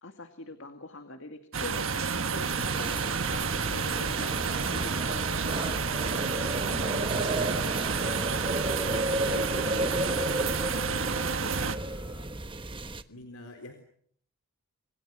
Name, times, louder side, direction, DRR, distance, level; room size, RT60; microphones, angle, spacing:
voice 1, 0.0-1.9 2.3-10.9, left 2 dB, 55° left, 7 dB, 2.2 m, -44 dB
sound 1, 1.5-11.8, right 5 dB, 60° right, 1.5 m, -30 dB
sound 2, 2.5-13.0, right 1 dB, 20° right, 1.2 m, -33 dB
voice 2, 11.4-12.4 13.1-13.7, left 1 dB, 75° left, 5 dB, 3.9 m, -48 dB
30.0 x 26.0 x 6.3 m, 0.63 s
head